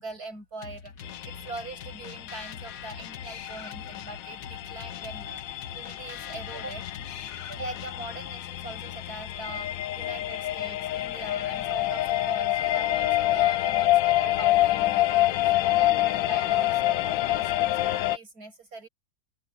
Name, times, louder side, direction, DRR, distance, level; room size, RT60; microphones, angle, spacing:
voice 1, 0.0-5.4 5.7-6.8 7.5-18.9, right 2 dB, 55° right, 7.3 m, -42 dB
sound 1, 0.6-8.2, left 7 dB, 55° left, 1.4 m, -44 dB
sound 2, 1.0-18.2, left 15 dB, 85° left, 1.3 m, -27 dB
open air
omnidirectional pair, 2.0 m